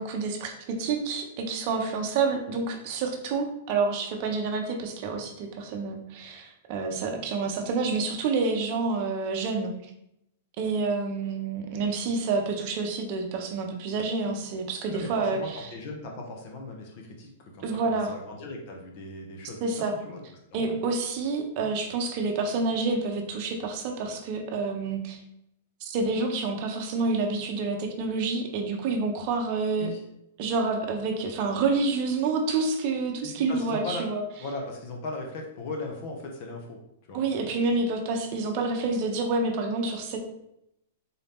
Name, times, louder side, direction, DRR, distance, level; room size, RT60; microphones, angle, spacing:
voice 1, 0.0-9.9 10.6-15.7 17.6-18.1 19.6-19.9 20.5-25.2 25.8-29.9 30.4-34.2 37.1-40.2, right 4 dB, 45° right, 3 dB, 0.7 m, -28 dB
voice 2, 14.9-20.2 20.5-20.8 29.8-30.0 33.2-34.0 34.4-36.8 37.1-37.2, left 2 dB, 45° left, 1 dB, 0.8 m, -38 dB
3.9 x 2.8 x 3.5 m, 0.80 s
hypercardioid pair, 150°, 0 cm